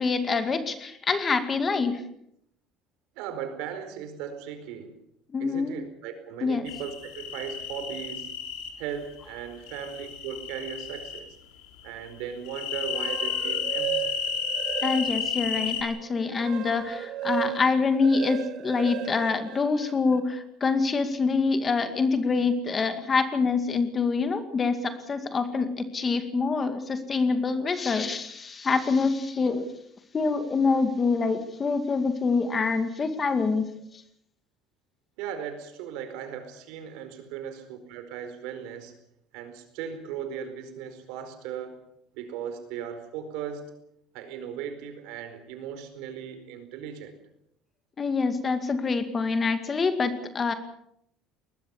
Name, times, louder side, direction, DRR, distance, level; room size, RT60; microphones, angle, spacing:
voice 1, 0.0-2.0 5.3-5.8 6.4-6.7 14.8-29.7 30.1-33.7 48.0-50.5, left 4 dB, 25° left, 9 dB, 2.2 m, -26 dB
voice 2, 3.2-4.9 5.4-8.3 8.8-11.4 11.8-14.1 35.2-38.9 39.3-41.8 42.1-43.7 44.1-47.2, right 8 dB, 85° right, 9 dB, 4.6 m, -37 dB
sound 1, 6.7-8.7 9.7-11.2 12.5-15.8, left 7 dB, 85° left, 4.1 m, -32 dB
sound 2, 12.8-15.4 15.9-20.2, right 12 dB, 55° right, 1.4 m, -35 dB
22.0 x 20.0 x 7.3 m, 0.73 s
cardioid pair, 155°, 0 cm